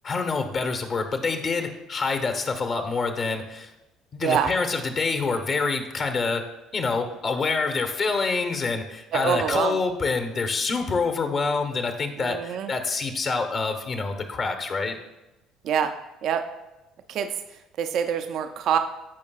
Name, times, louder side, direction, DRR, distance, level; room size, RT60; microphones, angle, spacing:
voice 1, 0.0-3.7 4.1-6.4 6.7-15.0, left 4 dB, 45° left, 6 dB, 1.0 m, -26 dB
voice 2, 9.1-9.8 12.2-12.7 15.6-15.9 16.2-16.4 17.1-17.3 17.8-18.8, right 8 dB, 55° right, 7 dB, 0.5 m, -25 dB
15.0 x 5.3 x 2.3 m, 1.0 s
figure-of-eight pair, 55°, 0 cm